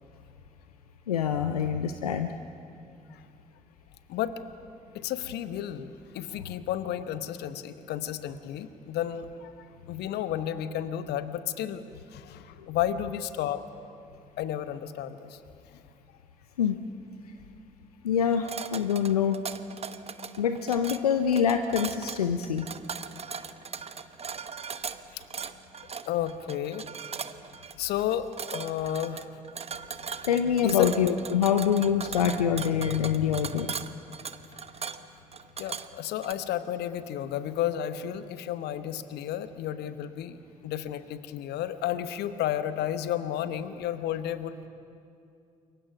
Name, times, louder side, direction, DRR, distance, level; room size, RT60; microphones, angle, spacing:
voice 1, 1.1-2.3 16.6-16.8 18.0-19.4 20.4-22.7 30.2-33.7, left 8 dB, 85° left, 8 dB, 0.6 m, -25 dB
voice 2, 4.9-9.5 9.9-11.8 12.1-13.6 14.4-15.4 15.7-15.8 25.1-25.2 26.1-26.8 27.8-29.4 30.6-30.9 35.6-40.4 40.6-44.7, left 11 dB, 60° left, 12 dB, 1.1 m, -32 dB
sound 1, 18.3-36.3, right 6 dB, 35° right, 1.0 m, -39 dB
28.5 x 23.0 x 6.0 m, 2.5 s
figure-of-eight pair, 45°, 19 cm